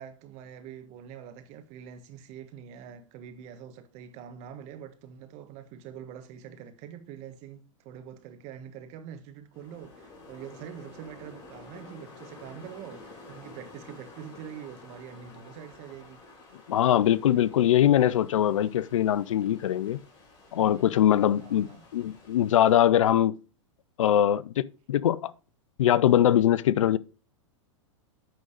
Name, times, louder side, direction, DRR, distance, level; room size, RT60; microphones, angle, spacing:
voice 1, 0.0-16.2 21.4-21.9, right 9 dB, 45° right, 1.3 m, -44 dB
sound 1, 9.5-22.7, left 3 dB, 30° left, 3.4 m, -51 dB
voice 2, 16.7-20.0 20.5-23.4 24.0-25.3 25.8-27.0, left 11 dB, 75° left, 0.5 m, -22 dB
9.0 x 3.9 x 4.9 m
hypercardioid pair, 115°, 16 cm